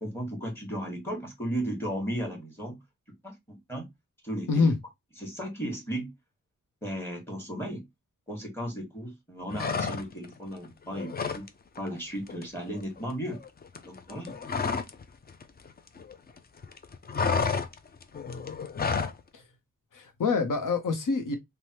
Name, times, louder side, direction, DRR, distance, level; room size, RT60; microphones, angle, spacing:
voice 1, 0.0-2.8 3.2-3.9 4.2-4.7 5.2-6.1 6.8-7.8 8.3-11.4 11.8-13.4 13.8-14.3, right 1 dB, 5° left, 1.4 m, -35 dB
sound 1, 9.5-10.3 10.6-11.5 11.8-12.0 12.3-15.0 15.3-16.4 16.6-19.2, left 5 dB, 30° left, 0.4 m, -31 dB
voice 2, 19.9-21.4, left 4 dB, 75° left, 0.8 m, -26 dB
3.3 x 2.2 x 2.7 m
wide cardioid pair, 115°, 32 cm